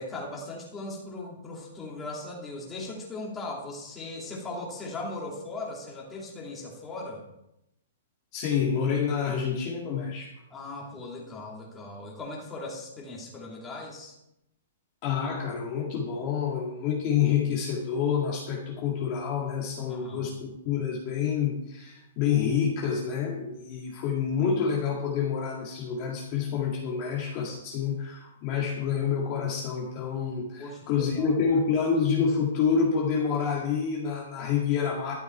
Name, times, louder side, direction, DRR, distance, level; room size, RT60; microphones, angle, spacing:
voice 1, 0.0-7.2 10.5-14.1 19.9-20.3 30.6-31.4, left 2 dB, 10° left, -2 dB, 2.7 m, -38 dB
voice 2, 8.3-10.3 15.0-35.1, left 6 dB, 25° left, -1 dB, 2.0 m, -28 dB
13.0 x 12.0 x 4.5 m, 0.85 s
hypercardioid pair, 175°, 0 cm